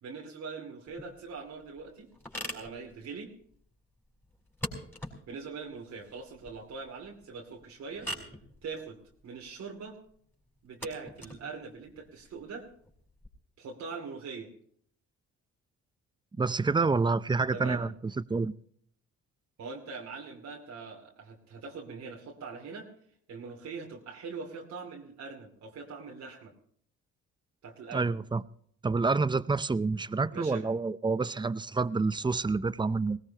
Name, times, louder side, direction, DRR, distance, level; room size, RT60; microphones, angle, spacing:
voice 1, 0.0-2.1 2.5-3.3 5.3-8.1 8.6-9.0 9.2-10.0 10.6-12.7 13.6-14.5 17.5-17.8 19.6-22.9 23.3-26.5 27.6-28.1 30.3-30.7, right 4 dB, 65° right, 2.6 m, -42 dB
sound 1, 0.9-13.3, equal, 5° left, 4.6 m, -45 dB
voice 2, 16.4-17.9 18.2-18.5 27.9-28.4 28.8-33.2, right 4 dB, 15° right, 0.5 m, -28 dB
20.5 x 18.0 x 2.9 m
cardioid pair, 90°, 30 cm